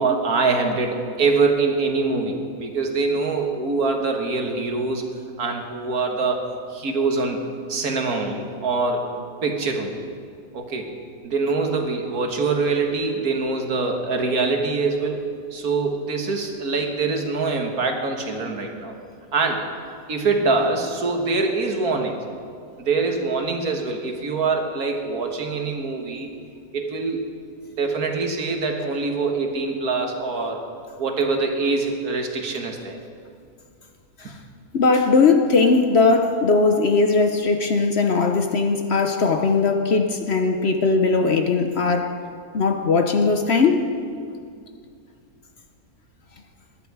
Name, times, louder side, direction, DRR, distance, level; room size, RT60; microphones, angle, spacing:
voice 1, 0.0-5.0 5.4-6.4 6.7-7.4 7.7-9.1 9.4-10.0 10.5-10.9 11.2-15.3 15.5-19.0 19.3-19.7 20.1-22.2 22.8-26.3 26.7-27.2 27.8-30.6 31.0-33.0 34.2-34.3, right 3 dB, 75° right, 3 dB, 1.9 m, -24 dB
voice 2, 34.7-42.1 42.5-43.8, left 4 dB, 50° left, 5 dB, 0.9 m, -19 dB
20.0 x 11.0 x 4.8 m, 2.3 s
omnidirectional pair, 1.6 m